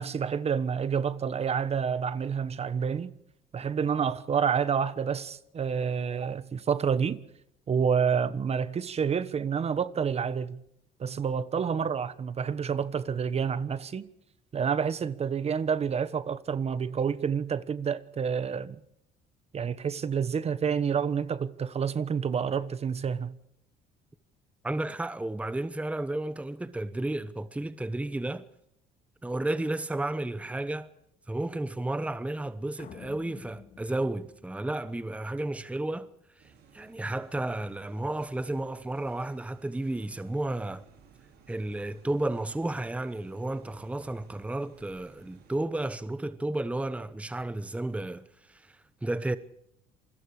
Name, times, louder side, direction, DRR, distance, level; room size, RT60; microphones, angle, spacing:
voice 1, 0.0-3.1 3.5-7.2 7.7-10.6 11.0-14.0 14.5-18.8 19.5-23.3, right 6 dB, 40° right, 1.3 m, -28 dB
voice 2, 24.6-28.4 29.2-30.9 31.3-36.1 36.4-40.8 41.5-49.4, right 2 dB, 10° right, 1.0 m, -32 dB
sound 1, 32.8-35.2, left 8 dB, 60° left, 3.3 m, -50 dB
sound 2, 36.4-45.7, right 6 dB, 75° right, 6.0 m, -58 dB
27.5 x 21.5 x 5.0 m
cardioid pair, 110°, 17 cm